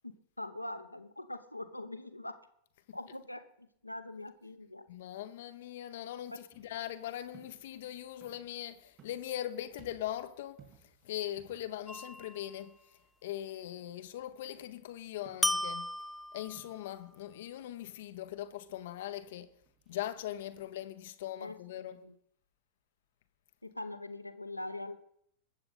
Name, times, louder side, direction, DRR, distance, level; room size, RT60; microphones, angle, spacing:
voice 1, 0.0-2.4 2.9-4.8 21.4-22.1 23.6-25.0, left 2 dB, 85° left, 0.8 m, -43 dB
voice 2, 4.9-10.6 11.0-12.7 13.2-15.9 16.3-19.5 19.9-22.0, left 12 dB, 55° left, 0.7 m, -40 dB
sound 1, 6.5-20.7, right 7 dB, 35° right, 3.9 m, -64 dB
sound 2, 11.9-12.6 15.4-16.8, left 1 dB, 5° left, 0.4 m, -35 dB
21.0 x 7.8 x 4.1 m
figure-of-eight pair, 90°, 0 cm